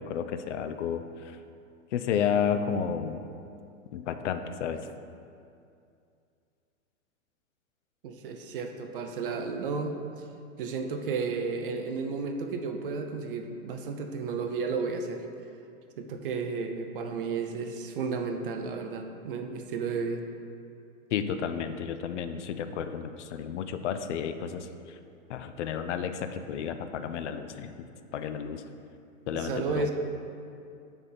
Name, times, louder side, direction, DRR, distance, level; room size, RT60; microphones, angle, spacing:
voice 1, 0.0-1.4 1.9-3.2 3.9-4.8 21.1-25.0 25.3-28.6 29.3-29.9, left 7 dB, 60° left, 9 dB, 0.5 m, -32 dB
voice 2, 8.0-10.2 10.6-15.2 16.0-20.2 29.3-29.9, right 4 dB, 45° right, 5 dB, 0.5 m, -33 dB
7.3 x 3.5 x 4.0 m, 2.5 s
hypercardioid pair, 150°, 41 cm